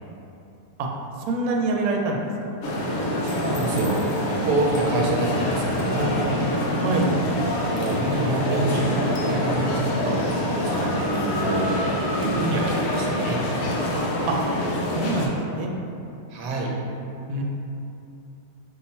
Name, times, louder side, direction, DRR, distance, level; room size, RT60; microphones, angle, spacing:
voice 1, 1.3-2.2 6.8-7.1 14.3-14.4 14.9-15.7 17.3-17.4, right 3 dB, 85° right, 0 dB, 1.4 m, -25 dB
sound 1, 2.6-15.3, left 1 dB, 90° left, 0.7 m, -25 dB
voice 2, 3.2-6.3 7.7-11.9 12.1-13.4 16.3-16.7, right 2 dB, 65° right, -2 dB, 1.2 m, -27 dB
5.5 x 2.3 x 4.1 m, 2.8 s
omnidirectional pair, 2.3 m